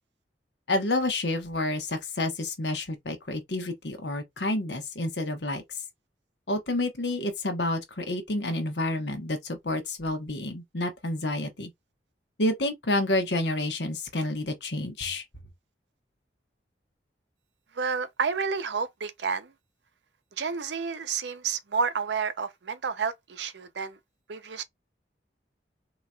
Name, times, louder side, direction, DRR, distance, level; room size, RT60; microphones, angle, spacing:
voice 1, 0.7-5.6 6.5-11.7 12.4-15.2, left 1 dB, 80° left, 1.1 m, -29 dB
voice 2, 17.7-19.5 20.4-24.0 24.3-24.6, right 5 dB, 80° right, 0.6 m, -30 dB
4.0 x 2.9 x 2.3 m
head